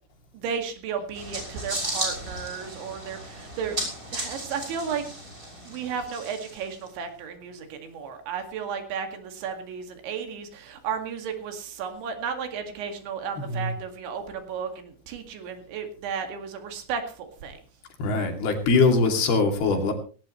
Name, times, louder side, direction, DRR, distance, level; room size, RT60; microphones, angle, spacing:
voice 1, 0.3-3.8 4.1-5.0 5.6-17.6, right 6 dB, 80° right, 5 dB, 4.5 m, -33 dB
sound 1, 1.1-6.9, right 1 dB, 15° right, 6.4 m, -35 dB
voice 2, 13.4-13.7 18.0-19.9, left 3 dB, 60° left, 4 dB, 4.4 m, -22 dB
18.0 x 17.5 x 3.2 m, 0.38 s
omnidirectional pair, 5.2 m